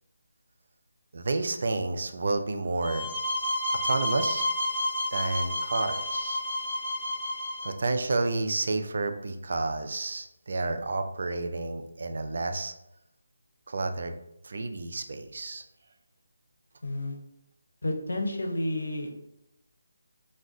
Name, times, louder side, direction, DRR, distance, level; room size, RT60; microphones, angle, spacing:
voice 1, 1.1-3.1 3.8-4.5 5.1-6.4 7.6-12.7 13.7-14.1 14.4-15.6, right 3 dB, 60° right, 7 dB, 0.3 m, -30 dB
sound 1, 2.8-7.7, left 1 dB, 5° left, 1.3 m, -30 dB
voice 2, 16.8-17.1 17.8-19.2, left 1 dB, 80° left, 3 dB, 0.6 m, -30 dB
2.3 x 2.1 x 3.6 m, 0.84 s
figure-of-eight pair, 160°, 0 cm